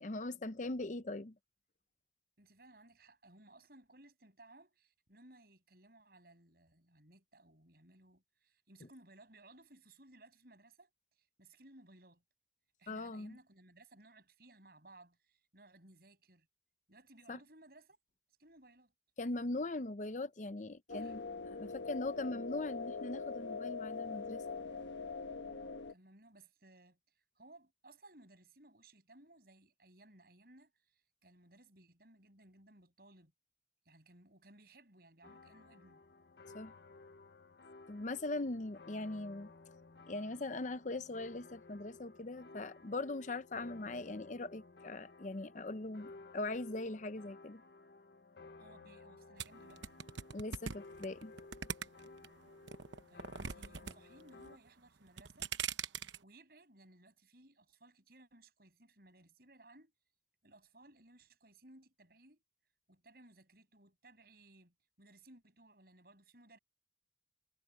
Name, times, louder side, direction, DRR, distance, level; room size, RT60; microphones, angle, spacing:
voice 1, 0.0-1.3 12.9-13.4 17.3-17.4 19.2-24.4 36.5-36.7 37.9-39.5 40.1-47.6 50.3-51.3, left 2 dB, 40° left, 0.7 m, -40 dB
voice 2, 2.4-12.2 12.8-16.5 16.9-18.0 18.4-18.9 20.9-21.2 25.9-33.3 33.9-36.0 48.6-50.0 53.1-55.5 56.2-59.9 60.4-62.4 62.9-66.6, right 2 dB, 55° right, 7.2 m, -61 dB
sound 1, 20.9-25.9, left 4 dB, 80° left, 1.3 m, -42 dB
sound 2, 35.2-54.6, left 3 dB, 65° left, 1.1 m, -56 dB
sound 3, 49.4-52.3 52.7-53.9 54.2-54.7 55.1-56.2, right 7 dB, 90° right, 1.0 m, -41 dB
head